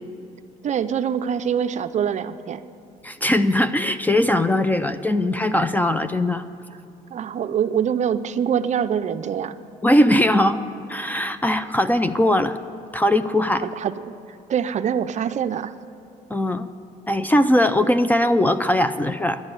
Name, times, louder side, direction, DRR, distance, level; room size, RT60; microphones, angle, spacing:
voice 1, 0.6-2.6 7.1-9.5 13.6-14.2 14.5-15.7, right 8 dB, 45° right, 11 dB, 0.5 m, -24 dB
voice 2, 3.0-6.5 9.8-10.6 10.9-12.6 12.9-13.6 16.3-16.7 17.1-19.4, left 1 dB, 10° left, 11 dB, 0.5 m, -20 dB
11.5 x 8.8 x 9.6 m, 2.7 s
cardioid pair, 110°, 17 cm